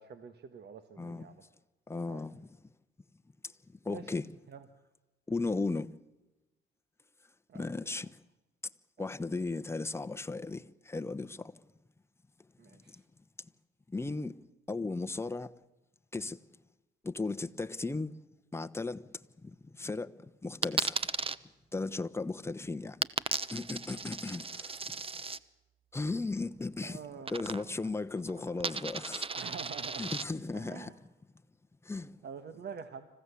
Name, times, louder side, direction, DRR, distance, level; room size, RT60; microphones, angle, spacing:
voice 1, 0.0-1.4 2.1-2.2 3.9-4.1 4.5-4.6 7.5-7.6 8.0-8.1 9.0-9.1 12.6-13.0 26.8-28.0 29.3-30.1 30.5-30.9 32.2-33.1, right 6 dB, 55° right, 1.6 m, -46 dB
voice 2, 1.0-1.3 1.9-2.4 3.7-4.3 5.3-5.9 7.5-8.2 9.0-11.5 12.7-13.0 13.9-14.3 14.7-15.5 16.1-16.4 17.0-18.1 18.5-19.1 19.4-21.0 21.7-23.0 23.5-25.0 25.9-27.0 27.3-29.3 30.0-30.9 31.8-32.2, left 3 dB, 15° left, 1.1 m, -36 dB
Coin (dropping), 20.6-21.4 23.0-25.4 27.2-27.9 28.2-30.2, right 4 dB, 30° right, 1.0 m, -35 dB
26.0 x 15.5 x 8.4 m
cardioid pair, 90°, 20 cm